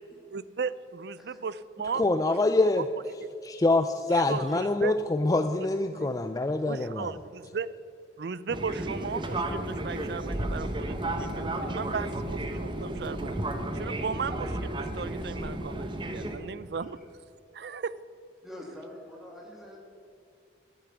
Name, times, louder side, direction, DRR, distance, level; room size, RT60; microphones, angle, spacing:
voice 1, 0.3-2.4 2.6-2.7 3.2-3.3 4.1-5.0 5.9-6.1 6.6-7.7 8.2-13.4 13.7-17.0 17.5-17.9, right 5 dB, 60° right, 17 dB, 0.4 m, -36 dB
voice 2, 2.0-2.8 3.4-7.1, left 2 dB, 20° left, 8 dB, 0.3 m, -25 dB
voice 3, 6.8-7.2 18.4-19.8, left 1 dB, ahead, -2 dB, 2.2 m, -46 dB
Fixed-wing aircraft airplane, 8.5-16.4, right 1 dB, 25° right, 0.9 m, -33 dB
12.0 x 8.5 x 7.1 m, 2.3 s
head